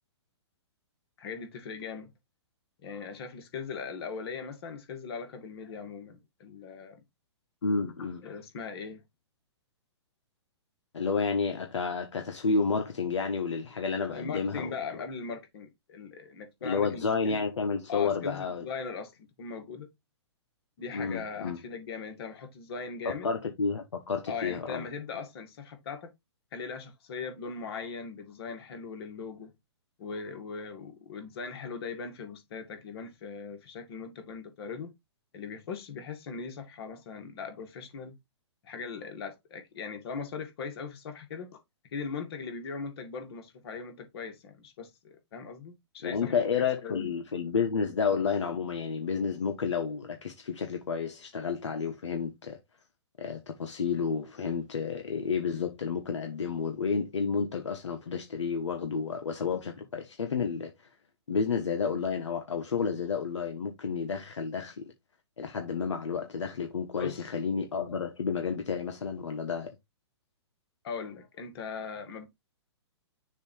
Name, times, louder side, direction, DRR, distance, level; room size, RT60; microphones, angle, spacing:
voice 1, 1.2-2.1 2.8-7.0 8.0-9.0 14.1-17.4 17.9-19.1 19.4-19.9 20.8-23.3 24.3-26.1 26.5-29.5 30.0-34.9 35.3-38.2 38.6-41.6 41.9-47.1 67.0-67.3 70.8-72.3, left 5 dB, 60° left, 2.2 m, -39 dB
voice 2, 7.6-8.2 10.9-15.0 16.6-18.6 20.9-21.6 23.0-24.9 46.0-52.6 53.2-60.7 61.3-64.8 65.4-69.7, left 5 dB, 80° left, 1.2 m, -31 dB
6.7 x 2.9 x 4.8 m
hypercardioid pair, 130°, 15 cm